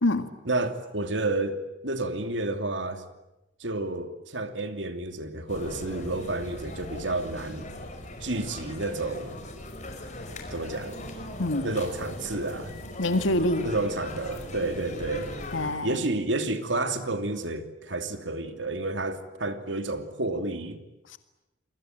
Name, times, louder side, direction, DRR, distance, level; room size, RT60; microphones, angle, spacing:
voice 1, 0.4-3.0 3.6-7.6 8.2-9.4 10.5-11.0 11.6-12.8 13.6-15.3 15.8-20.8, right 2 dB, 70° right, 2.8 m, -30 dB
sound 1, 5.5-15.8, left 1 dB, 40° left, 5.4 m, -39 dB
voice 2, 11.4-11.7 13.0-13.7 15.5-16.0 21.1-21.2, left 1 dB, 85° left, 2.0 m, -25 dB
28.5 x 22.5 x 9.1 m
head